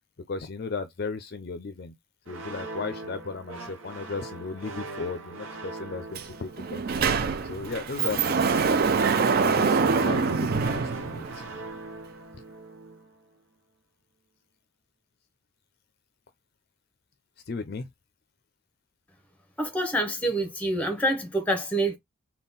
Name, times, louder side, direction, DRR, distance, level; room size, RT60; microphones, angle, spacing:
voice 1, 0.3-1.9 2.3-6.8 7.4-8.7 9.4-11.4 17.5-17.9, left 4 dB, 45° left, 0.4 m, -35 dB
sound 1, 2.3-13.2, right 2 dB, 65° right, 1.0 m, -40 dB
Sliding door, 6.1-6.3 6.6-11.6, right 5 dB, 45° right, 0.3 m, -25 dB
voice 2, 19.6-22.0, right 1 dB, 5° left, 0.8 m, -26 dB
3.6 x 2.3 x 3.9 m
head